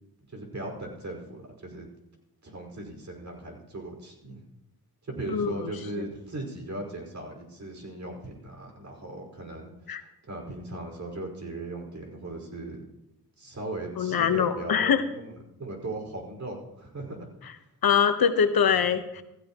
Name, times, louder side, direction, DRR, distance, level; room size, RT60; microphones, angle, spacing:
voice 1, 0.3-1.9 2.4-4.4 5.0-12.8 13.4-17.3 18.8-18.9, right 2 dB, 45° right, 0 dB, 5.1 m, -38 dB
voice 2, 5.3-5.7 9.9-10.0 14.0-15.0 17.8-19.2, left 7 dB, 60° left, 9 dB, 1.2 m, -23 dB
17.0 x 15.5 x 3.0 m, 0.86 s
cardioid pair, 70°, 40 cm